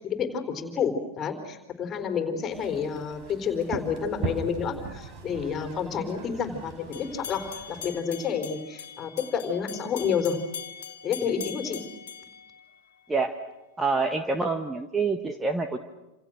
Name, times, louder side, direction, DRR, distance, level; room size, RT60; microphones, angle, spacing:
voice 1, 0.0-10.4 11.0-11.8, left 6 dB, 25° left, 7 dB, 4.3 m, -29 dB
sound 1, 2.5-7.9, right 4 dB, 35° right, 4.1 m, -39 dB
sound 2, 6.9-13.2, left 8 dB, 60° left, 1.6 m, -42 dB
voice 2, 13.8-15.8, right 4 dB, 10° right, 7 dB, 1.5 m, -26 dB
28.5 x 27.0 x 6.5 m, 1.0 s
figure-of-eight pair, 90°, 0 cm